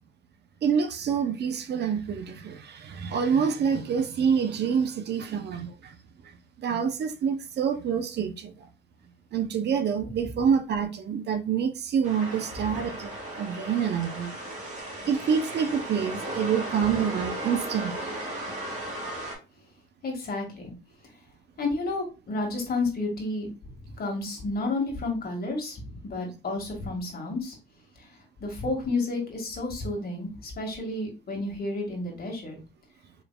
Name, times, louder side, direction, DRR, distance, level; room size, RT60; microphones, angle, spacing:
voice 1, 0.6-5.9 6.6-8.5 9.3-13.1 13.4-14.3 15.1-18.1, right 7 dB, 60° right, 0.6 m, -27 dB
voice 2, 10.0-10.4 12.7-12.8 20.0-20.7 21.6-27.6 27.9-32.6, left 2 dB, 50° left, 1.8 m, -31 dB
sound 1, 12.0-19.3, right 1 dB, 35° right, 2.0 m, -36 dB
4.5 x 3.2 x 2.2 m
cardioid pair, 90°, 20 cm